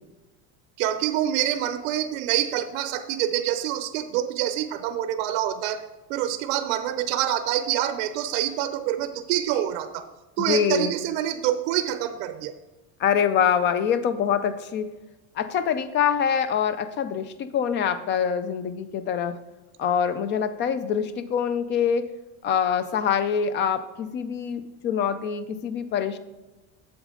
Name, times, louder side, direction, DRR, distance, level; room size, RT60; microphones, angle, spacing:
voice 1, 0.8-5.8 6.1-10.1 10.4-12.5, right 11 dB, 75° right, 10 dB, 0.7 m, -26 dB
voice 2, 10.4-10.9 13.0-14.9 15.4-19.4 19.8-22.1 22.4-26.2, left 7 dB, 30° left, 12 dB, 0.4 m, -25 dB
8.3 x 7.3 x 3.7 m, 1.1 s
cardioid pair, 160°, 41 cm